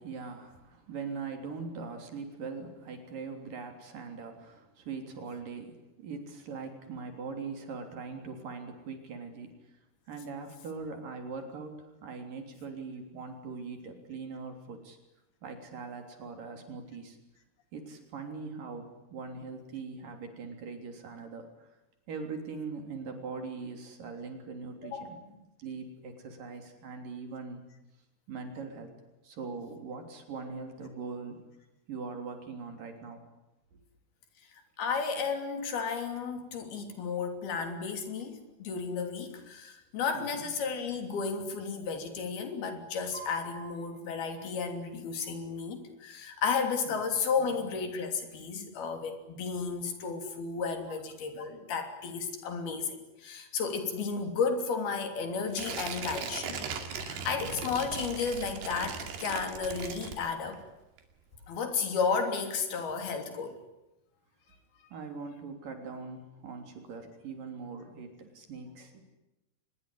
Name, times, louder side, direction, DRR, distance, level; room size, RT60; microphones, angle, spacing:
voice 1, 0.0-9.6 10.1-15.0 15.4-17.2 17.7-21.7 22.1-27.6 28.3-28.9 29.2-31.4 31.9-33.2 33.7-33.8 40.1-40.5 46.9-47.0 47.4-47.5 64.9-69.0, right 4 dB, 55° right, 5 dB, 4.9 m, -41 dB
voice 2, 34.5-60.6 61.5-63.6, left 5 dB, 70° left, 6 dB, 5.0 m, -33 dB
Piano, 43.1-45.2, right 4 dB, 15° left, 5.9 m, -50 dB
Tearing, 55.5-60.6 61.0-61.1, right 6 dB, 85° right, 4.5 m, -39 dB
24.5 x 21.0 x 10.0 m, 0.95 s
omnidirectional pair, 4.6 m